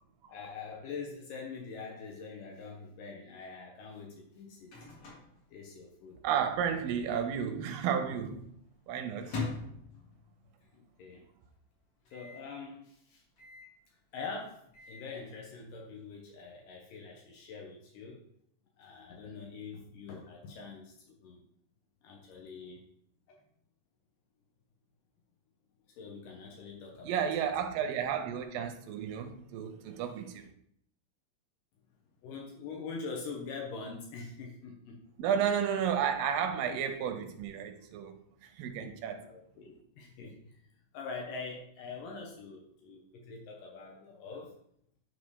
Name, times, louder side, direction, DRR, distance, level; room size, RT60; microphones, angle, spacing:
voice 1, 0.3-4.7 5.5-6.2 10.7-11.2 12.1-13.2 14.1-18.2 18.8-21.4 22.0-22.8 23.3-23.4 26.0-27.3 32.2-35.0 39.2-40.5 40.9-44.5, left 4 dB, 75° left, 2.5 m, -44 dB
Microwave oven, 4.1-6.3 6.5-6.6 6.9-7.4 7.9-10.6 11.0-11.1 11.3-11.4 12.1-12.5 13.4-13.8 14.5-15.1, left 3 dB, 50° left, 2.9 m, -43 dB
voice 2, 6.2-8.5 8.9-9.4 27.0-30.5 35.2-38.2 38.4-39.3, right 8 dB, 85° right, 2.4 m, -32 dB
10.5 x 4.1 x 3.2 m
omnidirectional pair, 4.0 m